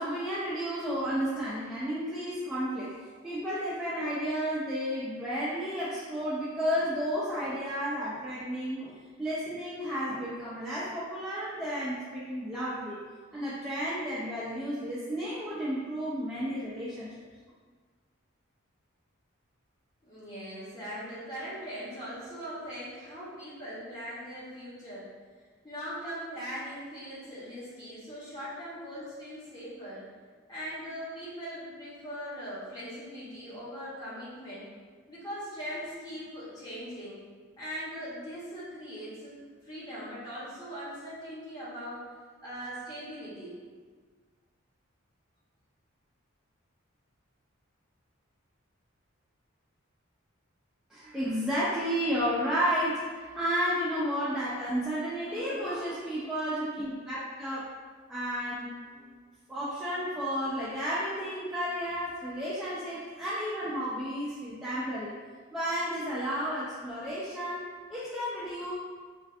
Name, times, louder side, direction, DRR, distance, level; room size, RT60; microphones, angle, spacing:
voice 1, 0.0-8.9 9.2-13.0 13.3-17.1 50.9-57.7 58.1-59.1 59.5-65.1 65.5-68.7, equal, ahead, -11 dB, 0.3 m, -32 dB
voice 2, 20.0-25.1 25.6-30.0 30.5-34.7 35.1-37.2 37.6-39.4 39.6-42.1 42.4-43.5 55.2-55.9, equal, 20° left, -9 dB, 0.9 m, -40 dB
3.2 x 2.4 x 2.4 m, 1.5 s
head